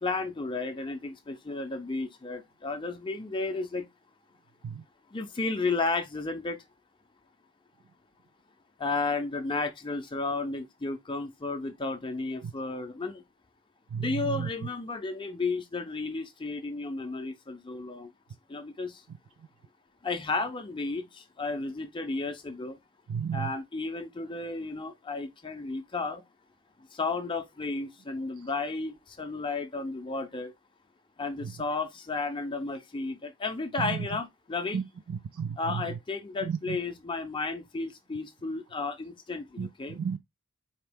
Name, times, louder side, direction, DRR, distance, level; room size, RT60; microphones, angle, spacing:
voice 1, 0.0-3.9 5.1-6.6 8.8-13.2 14.0-18.1 18.5-19.0 20.0-22.8 23.3-26.2 26.9-30.5 31.2-34.8 35.6-40.0, left 3 dB, 20° left, 0.5 m, -33 dB
voice 2, 13.9-14.5 23.1-23.5 33.8-34.0 34.7-34.8 35.1-35.8 36.5-36.8 39.6-40.2, right 6 dB, 65° right, 0.4 m, -33 dB
4.3 x 2.9 x 3.4 m
head